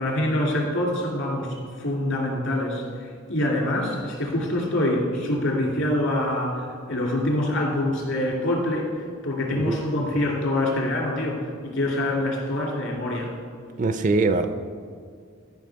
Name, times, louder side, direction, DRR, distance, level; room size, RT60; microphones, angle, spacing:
voice 1, 0.0-8.9 9.2-11.4 11.6-13.3, left 1 dB, 70° left, -2 dB, 2.6 m, -25 dB
voice 2, 13.8-14.5, right 3 dB, 35° right, 10 dB, 0.4 m, -22 dB
14.0 x 5.8 x 4.7 m, 2.1 s
head